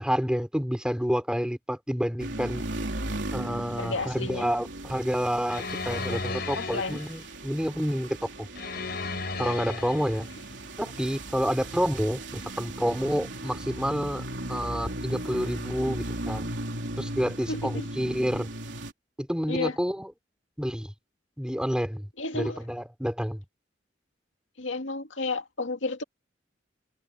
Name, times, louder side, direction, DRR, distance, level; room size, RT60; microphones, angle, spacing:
voice 1, 0.0-2.6 3.3-8.5 9.4-10.3 10.8-16.5 17.0-18.5 19.2-20.1 20.6-20.9 21.4-22.1 22.3-23.4, equal, 5° right, 3.3 m, -29 dB
sound 1, 2.2-18.9, right 1 dB, 70° right, 3.7 m, -37 dB
voice 2, 3.8-4.5 6.6-7.0 17.5-17.9 19.5-19.8 22.2-22.6 24.6-26.0, left 3 dB, 85° left, 2.1 m, -32 dB
sound 2, 5.5-7.2 8.6-10.3, left 4 dB, 55° left, 4.7 m, -34 dB
head